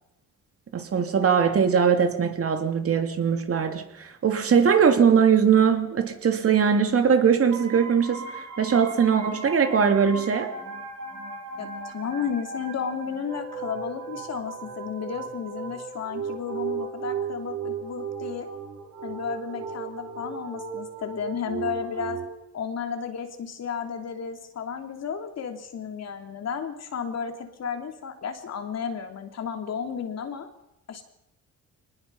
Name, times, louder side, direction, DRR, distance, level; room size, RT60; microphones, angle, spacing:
voice 1, 0.7-10.5, right 7 dB, 50° right, 6 dB, 2.8 m, -21 dB
sound 1, 7.5-22.3, right 5 dB, 90° right, 5.0 m, -36 dB
voice 2, 11.6-18.5 19.0-22.2 22.5-30.5 30.9-31.0, left 7 dB, 60° left, 5 dB, 3.1 m, -33 dB
23.5 x 20.0 x 5.7 m, 0.88 s
cardioid pair, 90°, 30 cm